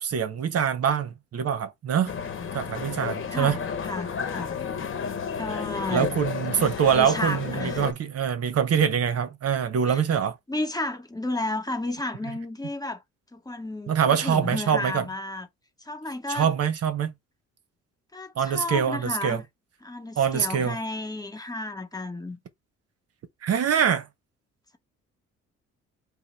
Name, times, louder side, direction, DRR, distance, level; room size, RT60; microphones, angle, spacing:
voice 1, 0.0-2.1 2.5-3.6 5.9-10.4 13.9-15.1 16.3-17.1 18.4-19.4 20.2-20.8 23.4-24.1, right 8 dB, 55° right, 0.8 m, -24 dB
sound 1, 2.0-7.9, left 6 dB, 40° left, 1.0 m, -32 dB
voice 2, 3.3-4.5 5.4-6.1 6.9-7.9 9.9-10.0 10.5-13.0 13.3-15.5 15.8-16.5 18.1-19.4 19.8-22.4, left 2 dB, 15° left, 0.9 m, -32 dB
5.5 x 2.0 x 4.2 m
cardioid pair, 90°, 30 cm